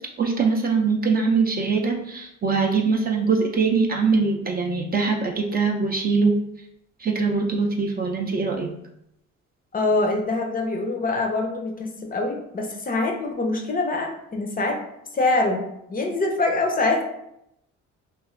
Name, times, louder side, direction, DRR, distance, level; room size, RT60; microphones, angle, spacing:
voice 1, 0.2-6.3 7.0-8.7, right 4 dB, 30° right, 0 dB, 0.4 m, -22 dB
voice 2, 9.7-14.8 15.1-15.6 15.9-17.0, left 2 dB, 30° left, 2 dB, 0.5 m, -24 dB
2.4 x 2.4 x 3.1 m, 0.79 s
cardioid pair, 90°, 30 cm